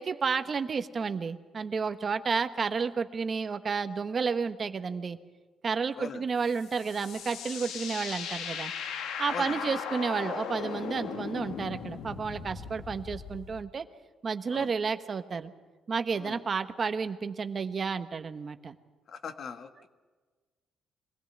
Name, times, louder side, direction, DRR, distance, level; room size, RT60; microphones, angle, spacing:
voice 1, 0.0-5.2 5.6-8.7 9.2-13.9 14.2-15.5 15.9-18.8, right 5 dB, 40° right, 10 dB, 1.2 m, -31 dB
sound 1, 6.4-13.6, left 7 dB, 85° left, 1.7 m, -38 dB
voice 2, 9.3-9.7 14.5-14.7 16.1-16.4 19.1-19.9, left 6 dB, 60° left, 8 dB, 1.6 m, -40 dB
23.5 x 16.5 x 8.7 m, 1.3 s
cardioid pair, 90°, 0 cm